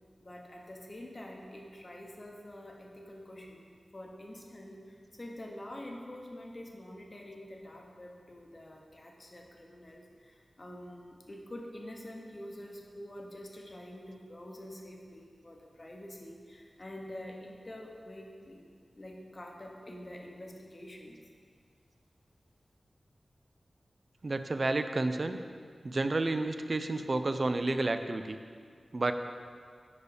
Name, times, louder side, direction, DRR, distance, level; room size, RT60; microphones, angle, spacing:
voice 1, 0.2-18.7 19.0-21.2, left 1 dB, 40° left, 0 dB, 0.9 m, -46 dB
voice 2, 24.2-25.4 25.8-28.4 28.9-29.1, right 2 dB, 55° right, 9 dB, 0.4 m, -30 dB
4.9 x 4.8 x 4.9 m, 2.1 s
cardioid pair, 40°, 0 cm